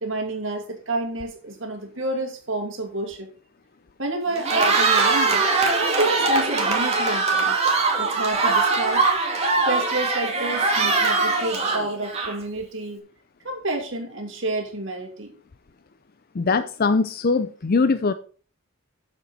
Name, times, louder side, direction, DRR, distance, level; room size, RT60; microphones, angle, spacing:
voice 1, 0.0-3.3 4.0-7.5 8.0-9.1 9.7-13.0 13.4-15.3, right 2 dB, 60° right, 3 dB, 2.5 m, -29 dB
Cheering, 4.3-12.6, right 3 dB, 30° right, 2.5 m, -21 dB
voice 2, 16.3-18.1, left 4 dB, 45° left, 11 dB, 0.5 m, -21 dB
9.3 x 7.4 x 4.1 m, 0.40 s
head